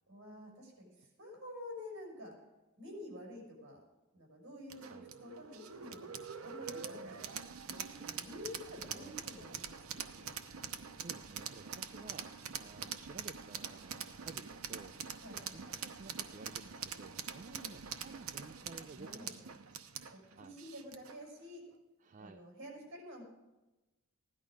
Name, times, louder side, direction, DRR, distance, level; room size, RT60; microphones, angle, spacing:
voice 1, 0.1-2.3 2.8-3.8 4.1-9.8 10.1-10.3 15.2-15.7 17.5-17.7 19.0-19.4 20.1-21.6 22.2-23.2, left 1 dB, 65° right, 0 dB, 5.7 m, -50 dB
sound 1, 4.7-21.2, right 7 dB, 80° right, 0.8 m, -45 dB
voice 2, 8.9-9.2 11.0-14.9 15.5-19.9 20.2-20.6 22.0-22.4, right 4 dB, 40° right, 9 dB, 0.4 m, -53 dB
16.0 x 11.0 x 5.0 m, 1.1 s
head